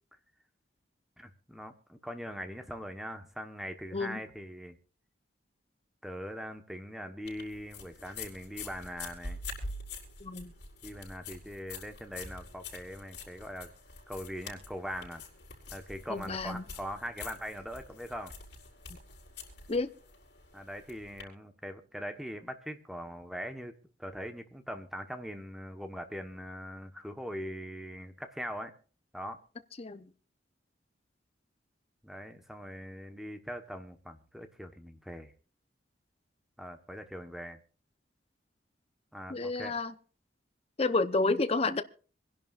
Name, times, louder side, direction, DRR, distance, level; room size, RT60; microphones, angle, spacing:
voice 1, 1.2-4.8 6.0-9.4 10.8-13.7 14.1-15.2 15.7-18.3 20.5-28.7 29.1-29.4 32.0-35.3 36.6-37.6 39.1-39.8, equal, ahead, 7 dB, 1.2 m, -41 dB
sound 1, 7.3-21.2, left 3 dB, 65° left, 5.4 m, -46 dB
voice 2, 10.2-10.5 16.1-16.6 19.7-19.9 29.8-30.1 39.3-39.9 40.8-41.8, left 3 dB, 35° left, 11 dB, 0.8 m, -30 dB
26.5 x 11.0 x 2.5 m, 0.38 s
head